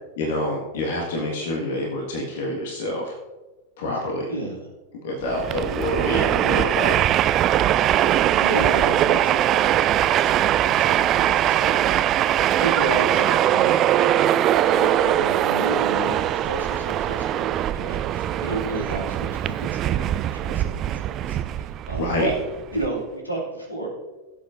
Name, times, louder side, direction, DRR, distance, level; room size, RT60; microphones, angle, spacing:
voice 1, 0.2-3.1 3.8-4.3 5.0-7.1 22.0-22.3, left 1 dB, 55° left, 0 dB, 1.7 m, -27 dB
voice 2, 4.3-4.6 8.0-22.4 22.7-23.9, right 2 dB, 85° left, -1 dB, 2.5 m, -32 dB
Train, 5.3-22.9, right 11 dB, 35° right, 0.3 m, -21 dB
16.5 x 7.9 x 2.6 m, 1.1 s
figure-of-eight pair, 90°, 0 cm